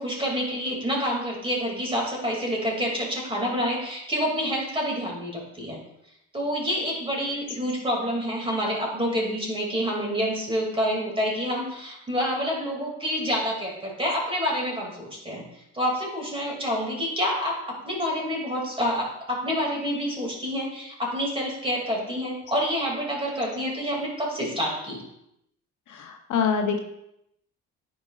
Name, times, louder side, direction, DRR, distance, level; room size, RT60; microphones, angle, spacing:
voice 1, 0.0-5.8 6.3-15.4 15.7-25.0, equal, 15° right, -2 dB, 2.5 m, -28 dB
voice 2, 25.9-26.8, left 6 dB, 70° left, 4 dB, 0.9 m, -25 dB
9.5 x 5.1 x 2.4 m, 0.82 s
cardioid pair, 85°, 31 cm